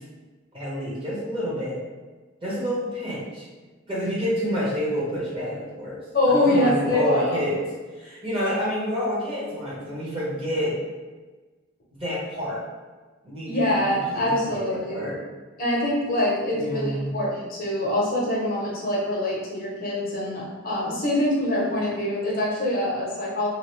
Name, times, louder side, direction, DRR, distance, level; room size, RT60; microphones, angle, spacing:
voice 1, 0.5-1.8 2.4-3.5 3.9-6.0 6.3-7.6 8.0-10.8 12.0-12.6 13.2-13.6 13.9-15.2 16.5-17.1, equal, 25° right, -7 dB, 1.0 m, -28 dB
voice 2, 6.1-7.4 13.4-15.0 15.6-23.5, left 1 dB, 45° left, -5 dB, 0.7 m, -24 dB
2.8 x 2.5 x 3.1 m, 1.3 s
head